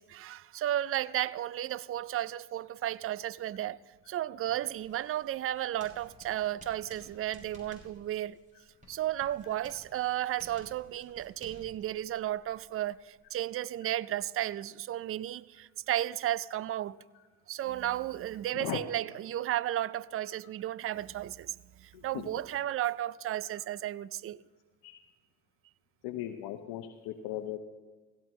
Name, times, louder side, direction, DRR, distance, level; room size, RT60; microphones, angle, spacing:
voice 1, 0.0-3.8 4.1-8.4 8.9-17.0 17.5-24.4, right 13 dB, 35° right, 0.4 m, -34 dB
Writing, 4.7-13.4, equal, 20° right, 5.8 m, -57 dB
voice 2, 9.4-9.8 17.1-17.2 18.5-18.8 21.9-22.3 24.8-25.0 26.0-27.6, left 13 dB, 65° left, 1.0 m, -38 dB
17.0 x 16.5 x 3.1 m
supercardioid pair, 75°, 41 cm